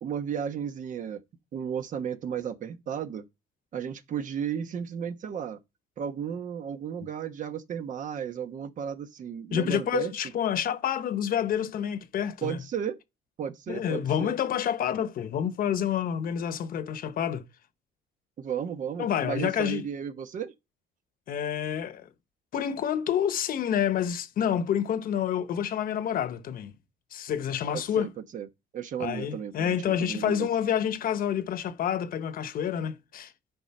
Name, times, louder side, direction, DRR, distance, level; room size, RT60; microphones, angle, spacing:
voice 1, 0.0-1.2 1.5-3.3 3.7-5.6 6.0-10.1 12.4-13.0 13.4-14.4 18.4-20.5 27.7-28.5 28.7-30.5, right 8 dB, 50° right, 1.1 m, -34 dB
voice 2, 9.5-12.6 13.7-17.4 19.0-19.9 21.3-22.1 22.5-26.7 27.1-28.1 29.0-33.3, left 9 dB, 60° left, 1.1 m, -28 dB
10.5 x 5.3 x 4.3 m
cardioid pair, 110°, 17 cm